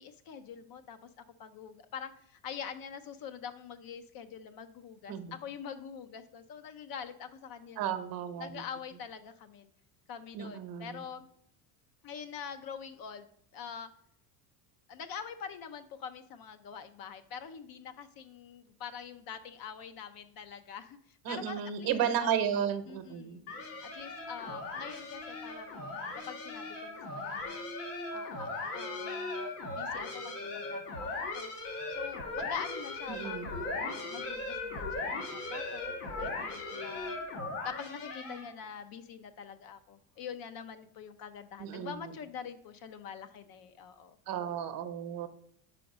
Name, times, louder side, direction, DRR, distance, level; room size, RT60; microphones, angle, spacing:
voice 1, 0.0-7.9 8.4-9.7 10.1-11.3 12.0-13.3 13.5-13.9 14.9-22.3 22.9-23.4 23.8-25.9 26.3-27.7 28.1-31.5 31.9-37.1 37.6-44.2, left 7 dB, 50° left, 10 dB, 0.6 m, -45 dB
voice 2, 7.8-8.5 10.3-11.0 21.2-23.4 33.1-33.5 41.6-41.9 44.3-45.3, right 9 dB, 50° right, 9 dB, 0.9 m, -33 dB
sound 1, 23.5-38.6, left 3 dB, 90° left, 1.8 m, -38 dB
5.0 x 3.9 x 4.9 m, 0.68 s
supercardioid pair, 95°, 45 cm